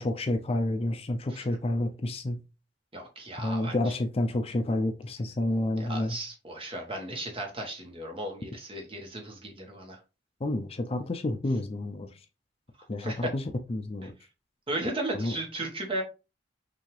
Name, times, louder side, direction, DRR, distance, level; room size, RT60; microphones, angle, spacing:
voice 1, 0.0-2.4 3.4-6.2 10.4-12.1 12.9-14.1 15.1-15.4, left 1 dB, 35° left, 0.5 m, -29 dB
voice 2, 2.9-3.9 5.8-10.0 13.0-13.3 14.7-16.0, right 1 dB, 30° right, 1.3 m, -35 dB
6.0 x 2.7 x 3.2 m
head